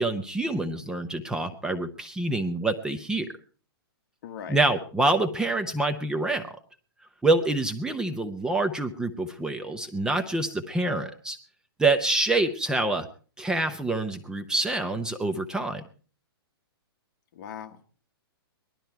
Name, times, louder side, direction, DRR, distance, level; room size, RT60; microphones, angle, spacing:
voice 1, 0.0-3.3 4.5-6.5 7.2-11.4 11.8-13.1 13.4-15.8, right 2 dB, 5° right, 7 dB, 0.6 m, -26 dB
voice 2, 4.2-4.6 17.3-17.9, left 8 dB, 45° left, 7 dB, 1.5 m, -39 dB
19.5 x 12.5 x 4.5 m, 0.40 s
hypercardioid pair, 155°, 13 cm